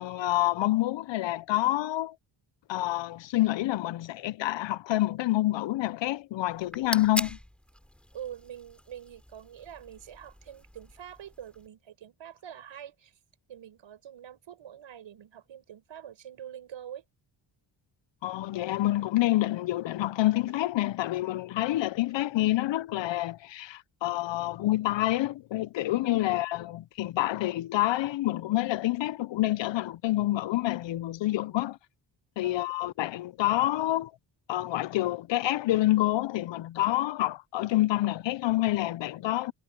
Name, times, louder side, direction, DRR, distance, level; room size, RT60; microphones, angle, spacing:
voice 1, 0.0-2.2 2.7-7.4 18.2-31.8 32.4-34.1 34.5-39.5, left 16 dB, 70° left, 0.6 m, -27 dB
sound 1, 6.5-11.7, equal, ahead, 2.9 m, -41 dB
voice 2, 8.1-13.1 13.5-17.0 26.0-26.4 32.4-32.7, right 10 dB, 75° right, 7.3 m, -45 dB
wide cardioid pair, 130°, 46 cm